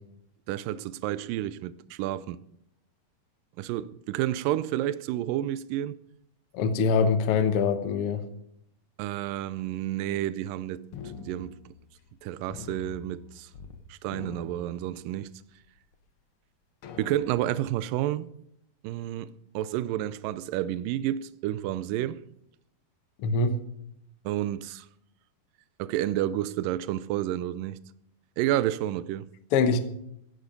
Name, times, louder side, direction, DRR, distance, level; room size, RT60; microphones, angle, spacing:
voice 1, 0.5-2.4 3.6-6.0 9.0-10.9 11.2-11.6 12.2-13.5 13.9-15.3 17.0-18.3 18.8-22.2 24.3-24.9 25.8-27.8 28.4-29.3, right 13 dB, 80° right, 2.2 m, -30 dB
voice 2, 6.5-8.2 23.2-23.6 29.5-29.8, left 5 dB, 70° left, 1.3 m, -23 dB
sound 1, 10.9-12.2 12.5-13.8 14.1-15.4 15.9-16.0 16.8-17.7, left 6 dB, 90° left, 1.1 m, -44 dB
16.0 x 10.5 x 5.3 m
omnidirectional pair, 4.2 m